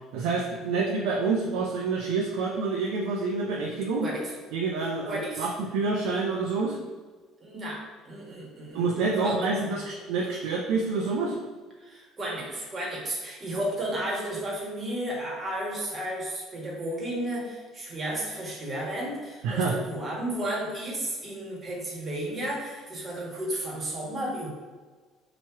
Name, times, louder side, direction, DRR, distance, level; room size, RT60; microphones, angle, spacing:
voice 1, 0.1-4.1 4.5-6.8 8.7-11.4 19.4-19.8, right 4 dB, 90° right, -2 dB, 0.5 m, -27 dB
voice 2, 5.1-5.5 7.4-9.8 11.8-24.5, right 1 dB, 25° right, -3 dB, 1.3 m, -33 dB
3.0 x 3.0 x 4.6 m, 1.4 s
cardioid pair, 125°, 0 cm